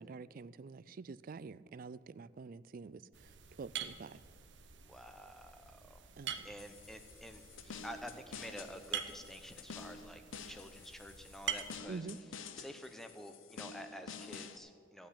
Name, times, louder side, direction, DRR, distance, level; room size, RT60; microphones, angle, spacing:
voice 1, 0.0-4.2 6.2-6.5 11.9-12.2, right 4 dB, 45° right, 18 dB, 0.3 m, -47 dB
sound 1, 3.1-11.8, right 8 dB, 65° right, 0.9 m, -46 dB
voice 2, 4.8-6.1 6.4-15.1, equal, ahead, 7 dB, 0.8 m, -50 dB
sound 2, 6.6-14.6, left 5 dB, 85° left, 0.7 m, -50 dB
15.5 x 5.8 x 9.9 m, 2.3 s
head